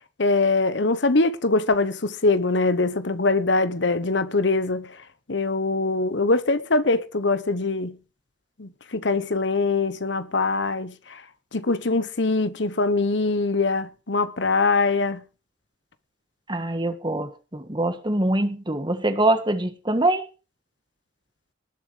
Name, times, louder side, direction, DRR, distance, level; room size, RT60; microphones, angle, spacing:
voice 1, 0.2-5.0 5.3-8.0 8.6-11.2 11.5-15.2, left 3 dB, 70° left, 1.1 m, -23 dB
voice 2, 16.5-20.2, right 2 dB, 25° right, 1.6 m, -24 dB
19.0 x 7.3 x 5.1 m
head